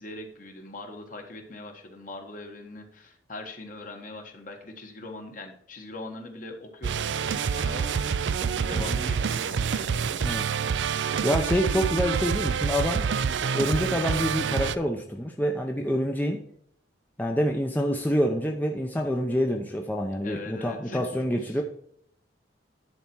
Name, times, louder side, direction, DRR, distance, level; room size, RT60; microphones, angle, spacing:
voice 1, 0.0-10.5 20.2-21.6, left 2 dB, 45° left, 3 dB, 1.5 m, -41 dB
sound 1, 6.8-14.8, right 6 dB, 75° right, 0.4 m, -27 dB
voice 2, 11.2-13.0 13.5-16.4 17.2-21.6, equal, 10° left, 1 dB, 0.6 m, -27 dB
10.5 x 4.3 x 6.0 m, 0.65 s
head